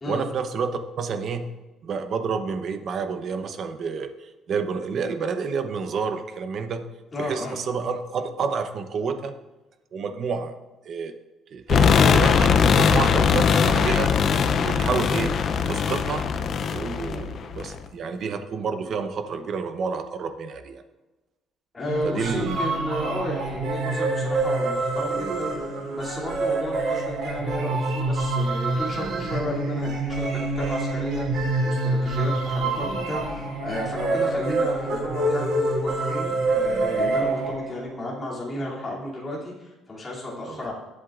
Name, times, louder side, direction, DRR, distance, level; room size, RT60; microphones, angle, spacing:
voice 1, 0.1-1.5 1.8-4.1 4.5-6.8 7.2-9.3 9.9-10.5 10.9-11.1 11.5-14.1 14.6-15.3 15.7-16.2 16.7-20.8 22.0-22.6 40.5-40.7, right 5 dB, 40° right, 8 dB, 0.8 m, -29 dB
voice 2, 7.1-7.6 21.7-30.3 30.5-31.4 31.6-40.7, left 1 dB, 20° left, -5 dB, 2.7 m, -33 dB
sound 1, 11.7-17.8, left 6 dB, 40° left, 0.5 m, -20 dB
sound 2, 21.9-37.9, right 2 dB, 60° right, 3.8 m, -26 dB
20.0 x 8.0 x 2.5 m, 1.1 s
cardioid pair, 175°, 0 cm